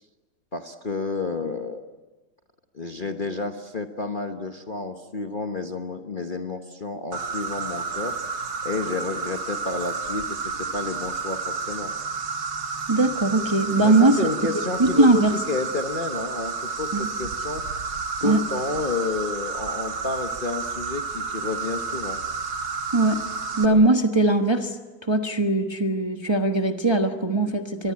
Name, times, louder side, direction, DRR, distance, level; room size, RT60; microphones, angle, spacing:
voice 1, 0.5-1.9 2.7-11.9 13.8-15.2 15.5-17.9 18.2-22.2, left 3 dB, 35° left, 5 dB, 1.1 m, -30 dB
Insect, 7.1-23.7, right 4 dB, 90° right, 2.2 m, -31 dB
voice 2, 12.9-14.2 14.8-15.3 16.9-17.1 18.2-18.4 22.9-23.2 23.6-24.8 25.0-27.9, right 2 dB, 15° right, 5 dB, 1.1 m, -20 dB
24.5 x 22.0 x 8.6 m, 1.2 s
omnidirectional pair, 1.9 m